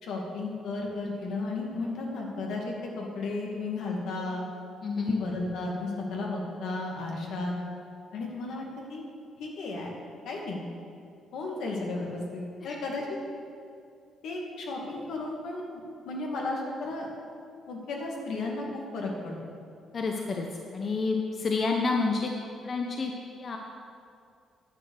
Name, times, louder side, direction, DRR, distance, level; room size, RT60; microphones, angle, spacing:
voice 1, 0.0-4.4 5.0-7.6 8.1-8.6 8.9-9.0 9.4-9.9 10.2-10.6 11.3-13.1 14.2-15.7 16.1-17.1 17.7-19.5, left 2 dB, 80° left, -1 dB, 2.1 m, -34 dB
voice 2, 4.8-5.1 12.6-12.8 19.9-20.5 20.7-22.3 22.6-23.1 23.4-23.6, left 4 dB, 45° left, 2 dB, 0.9 m, -29 dB
10.5 x 7.1 x 6.4 m, 2.4 s
cardioid pair, 90°, 0 cm